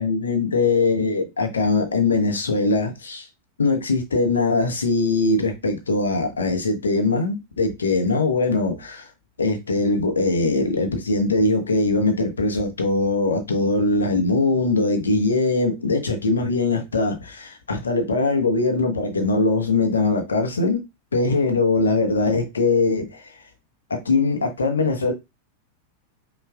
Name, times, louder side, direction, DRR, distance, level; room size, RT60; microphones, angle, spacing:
voice 1, 0.0-3.3 3.6-9.1 9.4-20.8 21.1-23.4 23.9-25.1, left 3 dB, 70° left, 0.8 m, -21 dB
5.3 x 2.4 x 2.3 m
figure-of-eight pair, 90°, 0 cm